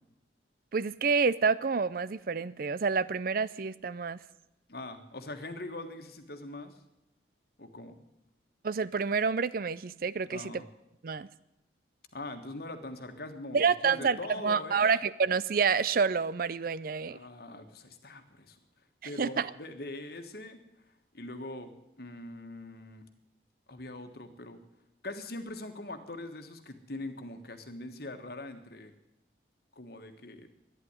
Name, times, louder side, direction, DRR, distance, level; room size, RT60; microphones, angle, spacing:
voice 1, 0.7-4.2 8.6-10.6 11.0-11.3 13.5-14.2 14.4-17.2 19.0-19.5, right 5 dB, 50° right, 18 dB, 0.5 m, -28 dB
voice 2, 4.7-6.8 7.6-7.9 10.3-10.7 12.1-14.9 17.1-18.6 19.0-20.6 21.1-21.7 22.0-23.0 23.7-24.6 25.0-28.9 29.7-30.5, left 2 dB, 55° left, 7 dB, 1.5 m, -42 dB
12.0 x 10.0 x 9.7 m, 0.87 s
head